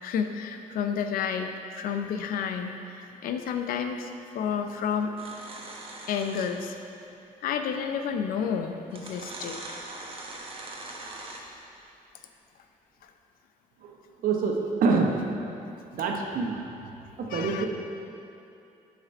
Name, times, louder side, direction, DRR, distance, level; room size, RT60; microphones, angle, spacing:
voice 1, 0.0-4.1 4.3-5.1 6.1-6.8 7.4-9.6 13.0-13.1 17.3-17.7, left 7 dB, 85° left, 6 dB, 0.6 m, -30 dB
sound 1, 5.2-6.7 8.0-8.1 8.9-11.6, right 2 dB, 40° right, 1.0 m, -41 dB
voice 2, 14.2-14.5 14.8-15.1 15.9-16.6 17.2-17.7, right 4 dB, 75° right, 1 dB, 1.0 m, -25 dB
7.6 x 5.3 x 5.3 m, 2.7 s
cardioid pair, 110°, 14 cm